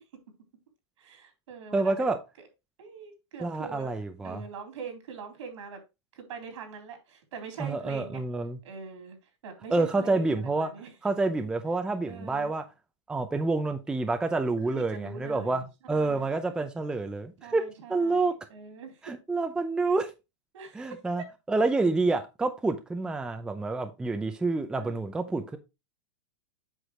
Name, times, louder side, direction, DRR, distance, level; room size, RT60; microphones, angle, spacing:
voice 1, 1.0-2.1 2.8-4.0 4.2-5.8 6.1-8.2 8.6-9.2 9.4-10.9 12.1-12.5 14.3-15.6 15.9-16.6 17.4-19.1 20.5-21.3 24.8-24.9, right 5 dB, 80° right, 3.7 m, -43 dB
voice 2, 1.7-2.2 3.4-4.4 7.6-8.6 9.7-10.7 11.0-12.6 13.1-15.6 15.9-17.6 17.9-18.3 19.0-20.1 20.7-21.2 21.5-25.6, right 3 dB, 5° right, 0.5 m, -28 dB
8.0 x 6.1 x 3.1 m
supercardioid pair, 160°, 16 cm